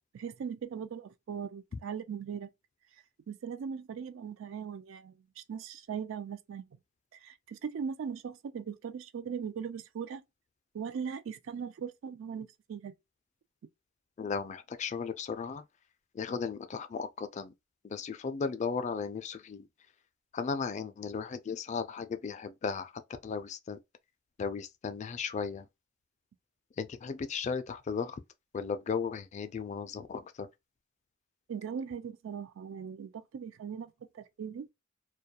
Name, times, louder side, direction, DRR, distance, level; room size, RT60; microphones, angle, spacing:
voice 1, 0.0-2.5 3.3-6.6 7.2-10.2 10.7-12.9 31.5-34.7, right 7 dB, 70° right, 0.3 m, -39 dB
voice 2, 14.2-15.6 16.1-17.5 17.8-19.7 20.3-22.9 23.2-23.8 24.4-25.7 26.8-28.2 28.5-30.5, left 5 dB, 35° left, 0.3 m, -35 dB
2.3 x 2.2 x 2.7 m
head